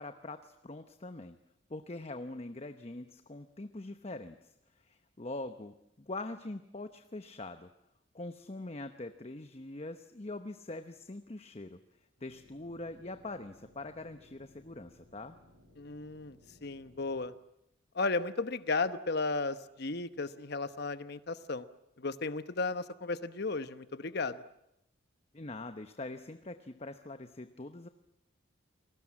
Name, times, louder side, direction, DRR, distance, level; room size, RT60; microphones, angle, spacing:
voice 1, 0.0-1.4 1.7-4.5 4.8-7.7 8.1-11.8 12.2-15.4 25.3-27.9, left 2 dB, 30° left, 9 dB, 0.9 m, -43 dB
sound 1, 12.2-17.3, left 1 dB, 80° right, 5.9 m, -62 dB
voice 2, 15.8-17.3 17.9-21.6 22.0-24.4, left 3 dB, 55° left, 12 dB, 1.1 m, -34 dB
30.0 x 20.5 x 7.5 m, 0.82 s
head